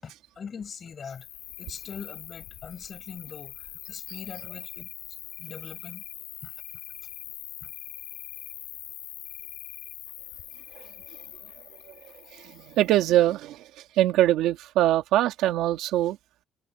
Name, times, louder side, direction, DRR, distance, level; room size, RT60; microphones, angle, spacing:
voice 1, 0.0-1.3 1.6-4.9 5.4-6.0 6.4-6.6 7.6-7.7, left 6 dB, 30° left, 7.0 m, -42 dB
Cricket, 1.1-13.0, left 14 dB, 80° left, 3.4 m, -43 dB
voice 2, 12.3-13.6 14.0-16.2, right 14 dB, 75° right, 2.0 m, -23 dB
cardioid pair, 170°, 0 cm